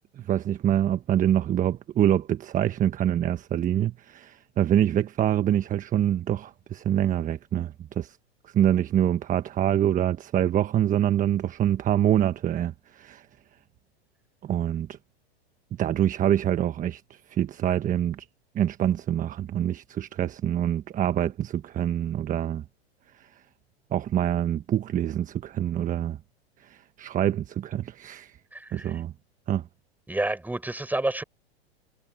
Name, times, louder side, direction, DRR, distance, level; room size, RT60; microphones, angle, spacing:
voice 1, 0.2-8.2 8.4-13.3 14.4-14.9 15.8-18.3 18.5-22.6 23.2-23.3 23.9-26.2 26.6-28.4 28.7-29.1 29.5-29.6, right 11 dB, 25° right, 1.4 m, -25 dB
voice 2, 28.5-28.9 30.1-31.2, right 2 dB, 5° right, 7.3 m, -29 dB
hypercardioid pair, 115°, 32 cm